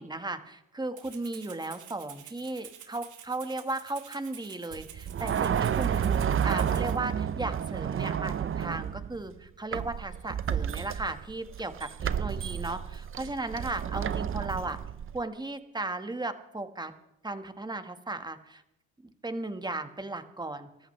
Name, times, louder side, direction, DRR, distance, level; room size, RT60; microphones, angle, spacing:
voice 1, 0.0-14.8 15.1-16.9 17.2-18.6 19.0-20.7, right 2 dB, 15° right, 8 dB, 1.6 m, -36 dB
Rattle (instrument), 1.0-7.0, right 10 dB, 80° right, 2.2 m, -49 dB
sound 1, 4.7-9.3 9.7-15.2, right 8 dB, 45° right, 0.8 m, -31 dB
27.5 x 13.5 x 3.3 m, 0.89 s
cardioid pair, 90°, 30 cm